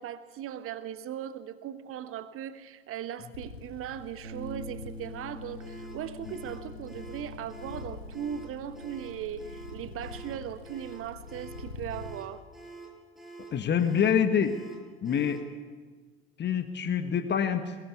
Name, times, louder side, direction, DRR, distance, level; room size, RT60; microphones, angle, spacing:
voice 1, 0.0-12.4, right 10 dB, 45° right, 11 dB, 1.3 m, -38 dB
sound 1, 3.3-12.2, left 3 dB, 80° left, 1.7 m, -45 dB
Bass guitar, 4.2-10.5, left 1 dB, 80° right, 4.0 m, -47 dB
sound 2, 5.6-15.5, right 3 dB, ahead, 7.8 m, -47 dB
voice 2, 13.5-14.5 15.0-15.4 16.4-17.6, left 8 dB, 35° left, 8 dB, 1.5 m, -26 dB
22.0 x 19.5 x 8.3 m, 1.4 s
figure-of-eight pair, 65°, 31 cm